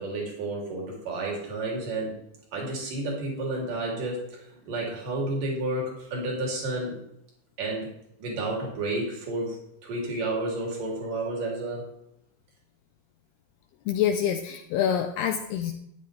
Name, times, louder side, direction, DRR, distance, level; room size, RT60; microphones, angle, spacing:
voice 1, 0.0-2.1 2.5-7.0 7.6-7.9 8.2-9.6 9.8-11.9, right 2 dB, 50° right, -2 dB, 4.5 m, -31 dB
voice 2, 13.9-15.7, left 9 dB, 80° left, 5 dB, 2.5 m, -26 dB
13.0 x 10.5 x 3.4 m, 0.77 s
omnidirectional pair, 5.1 m